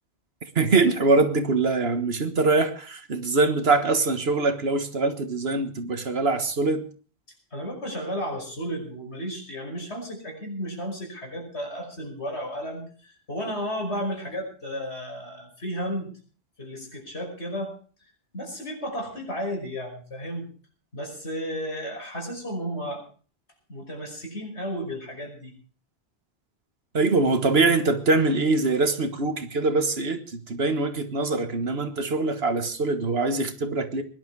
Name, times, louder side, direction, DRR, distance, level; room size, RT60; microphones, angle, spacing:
voice 1, 0.6-6.8 26.9-34.0, right 3 dB, 65° right, 1.7 m, -23 dB
voice 2, 7.5-16.1 16.6-17.8 18.3-20.5 20.9-23.0 23.7-25.5, equal, 85° left, 6.0 m, -33 dB
20.5 x 11.5 x 4.8 m
omnidirectional pair, 1.1 m